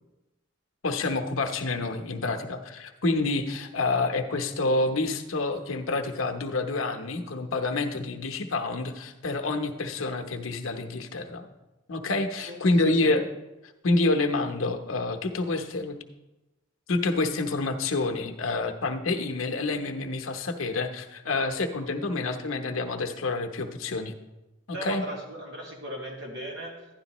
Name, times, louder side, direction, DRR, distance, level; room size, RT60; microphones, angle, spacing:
voice 1, 0.8-11.5 11.9-13.3 13.8-16.0 16.9-24.1 24.7-25.0, left 2 dB, 90° left, 5 dB, 0.8 m, -28 dB
voice 2, 12.4-13.1 24.7-26.9, right 1 dB, 60° right, -1 dB, 2.1 m, -38 dB
12.0 x 10.5 x 3.0 m, 1.0 s
head